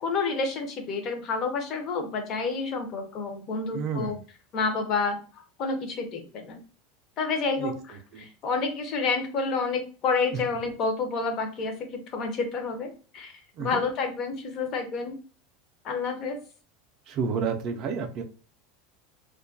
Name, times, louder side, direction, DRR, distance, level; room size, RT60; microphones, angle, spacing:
voice 1, 0.0-4.2 4.5-5.2 5.6-6.6 7.2-13.3 13.6-15.2 15.8-16.4, left 4 dB, 35° left, 5 dB, 0.5 m, -29 dB
voice 2, 3.7-4.2 7.6-7.7 8.1-8.2 13.6-13.7 17.1-18.2, right 5 dB, 40° right, 4 dB, 0.4 m, -30 dB
2.2 x 2.1 x 2.6 m, 0.38 s
supercardioid pair, 165°, 0 cm